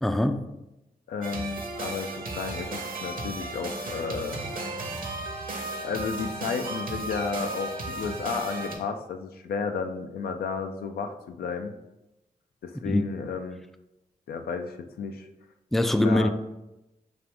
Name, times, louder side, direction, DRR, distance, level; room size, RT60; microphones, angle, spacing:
voice 1, 0.0-0.4 12.8-13.0 15.7-16.3, left 1 dB, ahead, 0.3 m, -23 dB
voice 2, 1.1-4.4 5.8-11.7 12.6-13.6 14.3-15.3 16.0-16.3, left 5 dB, 85° left, 0.4 m, -32 dB
sound 1, 1.2-8.8, right 2 dB, 65° right, 0.9 m, -35 dB
5.0 x 2.5 x 3.4 m
cardioid pair, 55°, 15 cm